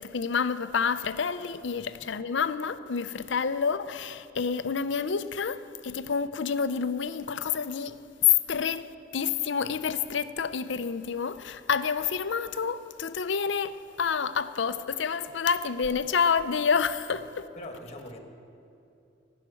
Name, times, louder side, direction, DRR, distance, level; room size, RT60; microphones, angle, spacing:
voice 1, 0.0-17.5, left 6 dB, 65° left, 0.5 m, -28 dB
voice 2, 1.7-2.1 17.5-18.2, left 1 dB, 35° left, 1.6 m, -43 dB
16.5 x 6.6 x 9.6 m
head